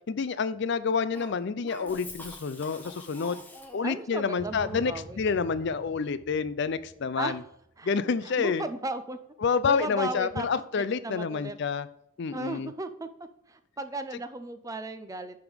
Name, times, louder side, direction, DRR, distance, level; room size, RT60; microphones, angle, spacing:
voice 1, 0.1-3.4 3.7-7.4 7.8-8.6 9.4-11.9 12.2-12.7, left 5 dB, 55° left, 14 dB, 0.4 m, -28 dB
Cough, 1.1-4.1, left 2 dB, 10° left, 0.9 m, -45 dB
voice 2, 3.8-5.2 7.2-7.4 7.8-7.9 8.2-9.2 9.6-11.6 12.3-13.1 13.5-15.4, right 2 dB, 15° right, 9 dB, 0.5 m, -35 dB
sound 1, 4.4-7.9, equal, 35° right, 2.7 m, -48 dB
10.5 x 3.7 x 5.1 m, 0.75 s
head